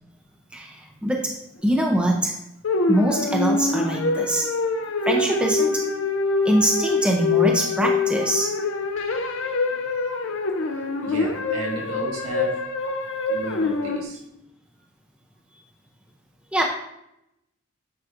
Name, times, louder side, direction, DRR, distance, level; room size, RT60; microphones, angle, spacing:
voice 1, 0.5-1.4 1.6-2.4 2.9-4.5 5.0-5.9 6.4-8.6 16.5-16.6, right 1 dB, 5° right, 0 dB, 0.5 m, -23 dB
sound 1, 2.6-14.0, left 3 dB, 65° left, 0.6 m, -25 dB
voice 2, 10.6-12.7 13.3-14.2, right 1 dB, 85° right, -3 dB, 1.8 m, -34 dB
8.5 x 4.6 x 2.5 m, 0.82 s
head